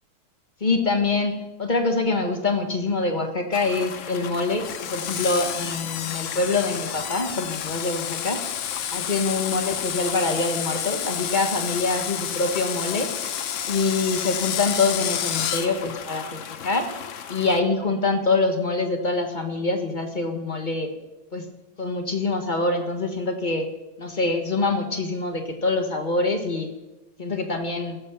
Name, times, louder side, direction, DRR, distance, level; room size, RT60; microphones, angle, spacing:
voice 1, 0.6-8.4 8.9-13.1 13.7-16.9 17.3-20.9 21.3-21.5 21.8-23.7 24.0-26.7 27.2-28.0, left 3 dB, 25° left, 4 dB, 1.4 m, -25 dB
sound 1, 3.5-17.6, left 8 dB, 60° left, 0.8 m, -37 dB
Screech, 4.6-15.7, left 10 dB, 85° left, 1.7 m, -30 dB
16.0 x 7.3 x 7.2 m, 1.0 s
omnidirectional pair, 2.1 m